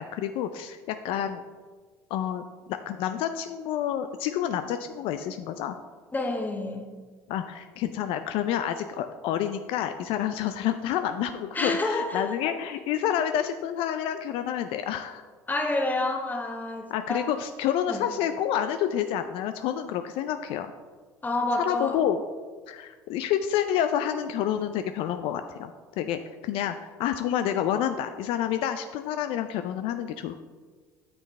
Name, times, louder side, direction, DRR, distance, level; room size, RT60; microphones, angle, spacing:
voice 1, 0.0-1.4 2.1-2.4 2.9-5.8 7.3-15.2 16.9-20.7 21.6-22.2 22.7-30.4, left 10 dB, 65° left, 9 dB, 0.4 m, -29 dB
voice 2, 6.1-6.9 11.5-12.8 15.5-17.3 17.9-18.1 21.2-22.0, left 2 dB, 15° left, 3 dB, 1.2 m, -29 dB
8.7 x 6.5 x 3.2 m, 1.5 s
hypercardioid pair, 80°, 10 cm